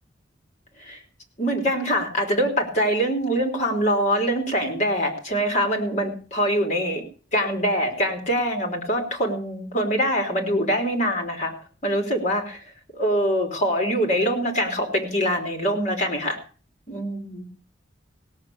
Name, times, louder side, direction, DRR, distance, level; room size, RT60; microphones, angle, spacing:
voice 1, 1.4-7.0 7.3-11.5 11.8-12.6 12.9-16.4 16.9-17.5, equal, 40° left, 3 dB, 3.4 m, -24 dB
17.0 x 6.7 x 8.5 m, 0.40 s
head